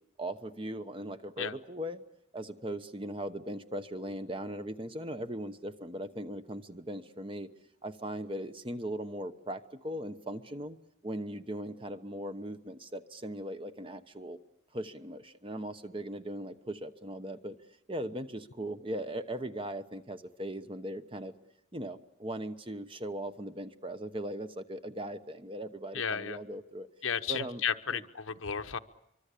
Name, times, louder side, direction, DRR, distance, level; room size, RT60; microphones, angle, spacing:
voice 1, 0.2-2.0 2.3-7.5 7.8-10.8 11.0-14.4 14.7-17.6 17.9-21.3 21.7-26.9 27.3-27.6 27.9-28.0, right 1 dB, 25° right, 10 dB, 1.0 m, -39 dB
voice 2, 25.9-26.4 27.0-28.8, left 7 dB, 85° left, 9 dB, 1.0 m, -33 dB
24.5 x 24.0 x 8.4 m, 0.84 s
head